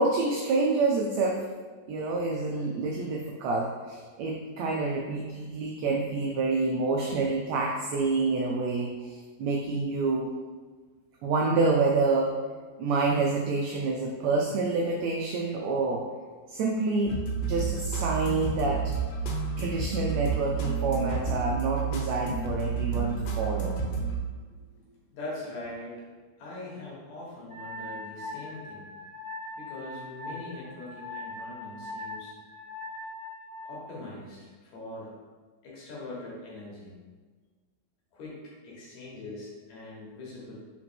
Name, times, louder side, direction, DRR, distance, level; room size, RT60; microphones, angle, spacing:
voice 1, 0.0-1.4 1.9-10.3 11.2-12.4 12.8-16.1 16.5-18.9 19.6-23.8, right 3 dB, 85° right, 1 dB, 1.5 m, -27 dB
sound 1, 17.1-24.2, right 5 dB, 85° left, 2.5 m, -30 dB
voice 2, 25.1-26.1 26.4-28.9 29.6-32.3 33.6-35.2 35.6-36.9 38.1-40.6, left 2 dB, 65° left, -5 dB, 2.6 m, -42 dB
Wind instrument woodwind instrument, 27.5-33.8, left 2 dB, 45° right, 1.0 m, -41 dB
5.1 x 4.1 x 4.5 m, 1.4 s
omnidirectional pair, 3.7 m